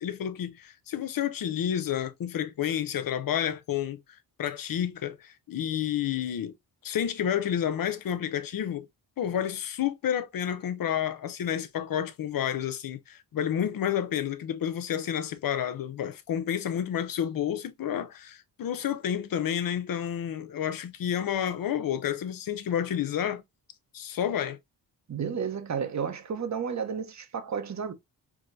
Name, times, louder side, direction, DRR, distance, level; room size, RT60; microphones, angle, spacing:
voice 1, 0.0-4.0 4.4-6.5 6.8-8.9 9.2-23.4 23.9-24.6, left 9 dB, 55° left, 0.7 m, -30 dB
voice 2, 25.1-27.9, right 6 dB, 40° right, 0.8 m, -32 dB
4.7 x 2.2 x 2.5 m
cardioid pair, 65°, 42 cm